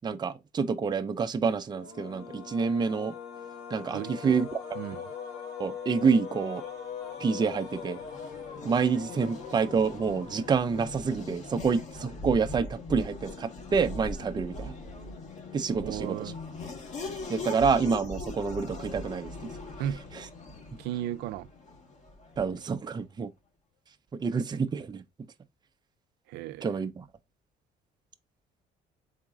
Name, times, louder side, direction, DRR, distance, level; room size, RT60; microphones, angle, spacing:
voice 1, 0.0-3.1 3.7-4.6 5.6-6.6 7.2-8.0 8.6-14.7 15.5-16.3 17.3-19.5 20.1-20.3 22.4-23.3 24.2-25.0 26.6-27.1, right 5 dB, 25° right, 0.6 m, -28 dB
sound 1, 1.7-11.1, left 7 dB, 80° left, 1.9 m, -41 dB
voice 2, 3.9-4.5 4.8-5.0 15.8-16.4 19.8-20.0 20.8-21.5 26.3-26.7, right 12 dB, 80° right, 0.4 m, -35 dB
Race car auto racing / Accelerating revving vroom, 7.1-22.7, left 2 dB, 45° left, 1.5 m, -41 dB
4.0 x 3.7 x 3.6 m
cardioid pair, 110°, 17 cm